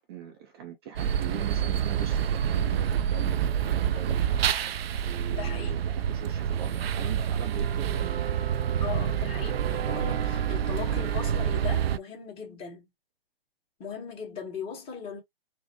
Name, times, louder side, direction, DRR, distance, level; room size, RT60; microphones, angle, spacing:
voice 1, 0.0-4.3 5.0-8.7, right 9 dB, 25° right, 0.5 m, -41 dB
sound 1, 1.0-12.0, right 9 dB, 75° right, 0.5 m, -27 dB
voice 2, 5.3-5.8 8.8-12.9 13.8-15.2, left 7 dB, 20° left, 1.4 m, -38 dB
4.0 x 2.1 x 2.9 m
hypercardioid pair, 145°, 30 cm